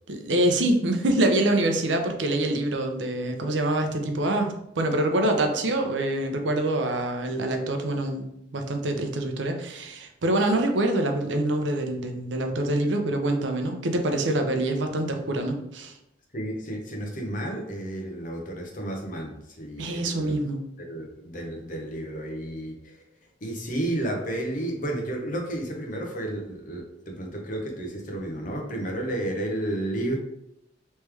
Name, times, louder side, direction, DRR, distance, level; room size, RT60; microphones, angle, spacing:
voice 1, 0.1-8.3 8.5-16.0 19.8-20.6, right 1 dB, 75° right, 5 dB, 0.6 m, -25 dB
voice 2, 16.3-20.4 20.8-23.1 23.4-30.2, right 1 dB, 45° left, 1 dB, 0.8 m, -32 dB
3.2 x 3.2 x 3.3 m, 0.80 s
head